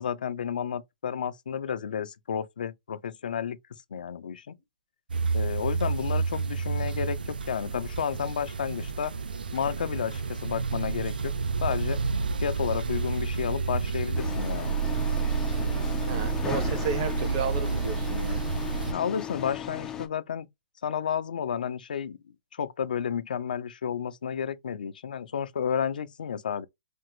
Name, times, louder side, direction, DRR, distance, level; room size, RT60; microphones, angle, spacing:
voice 1, 0.0-3.6 3.9-4.5 5.3-9.1 9.5-11.3 11.6-12.0 12.4-14.7 18.9-20.5 20.8-22.2 22.5-26.7, left 8 dB, 70° left, 0.6 m, -31 dB
sound 1, 5.1-18.9, right 5 dB, 90° right, 0.5 m, -30 dB
sound 2, 14.1-20.1, left 9 dB, 10° left, 0.4 m, -36 dB
voice 2, 16.0-18.4, right 6 dB, 35° right, 0.8 m, -32 dB
3.4 x 2.0 x 3.0 m
hypercardioid pair, 160°, 5 cm